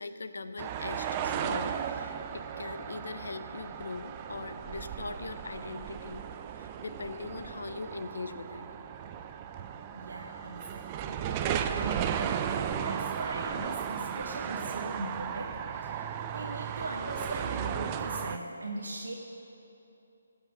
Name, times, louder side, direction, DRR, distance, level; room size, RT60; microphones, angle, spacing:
voice 1, 0.0-6.2 6.5-8.7, left 3 dB, 75° left, 10 dB, 0.7 m, -40 dB
sound 1, 0.6-18.4, right 8 dB, 25° right, 0.4 m, -35 dB
voice 2, 9.9-11.2 11.7-19.1, right 2 dB, 75° right, 0 dB, 1.0 m, -40 dB
14.0 x 5.6 x 6.1 m, 2.8 s
figure-of-eight pair, 155°, 0 cm